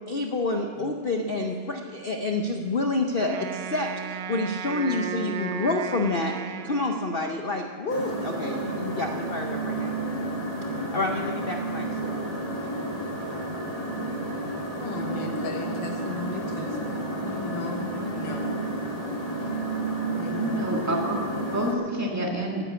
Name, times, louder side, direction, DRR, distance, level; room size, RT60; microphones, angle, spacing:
voice 1, 0.0-6.4 6.6-10.0 10.9-12.1, left 2 dB, 65° left, 4 dB, 0.5 m, -28 dB
Wind instrument woodwind instrument, 3.2-7.6, right 6 dB, 75° right, 1.4 m, -35 dB
sound 1, 7.9-21.7, right 2 dB, 20° left, 1.8 m, -31 dB
voice 2, 14.8-18.6 19.4-19.5 20.1-20.5, left 5 dB, 90° left, 2 dB, 2.1 m, -36 dB
voice 3, 20.4-22.7, right 1 dB, 10° right, -1 dB, 1.7 m, -28 dB
11.0 x 10.0 x 8.3 m, 2.4 s
omnidirectional pair, 2.0 m